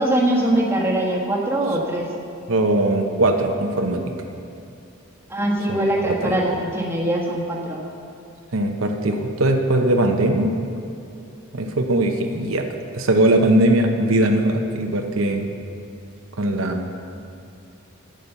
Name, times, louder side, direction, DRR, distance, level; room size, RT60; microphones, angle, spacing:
voice 1, 0.0-2.1 5.3-7.8, right 1 dB, 10° right, -3 dB, 1.4 m, -22 dB
voice 2, 2.5-4.0 5.7-6.4 8.5-10.5 11.5-12.7 12.9-15.5 16.4-16.9, right 1 dB, 80° right, 4 dB, 0.9 m, -20 dB
9.4 x 8.3 x 6.9 m, 2.7 s
head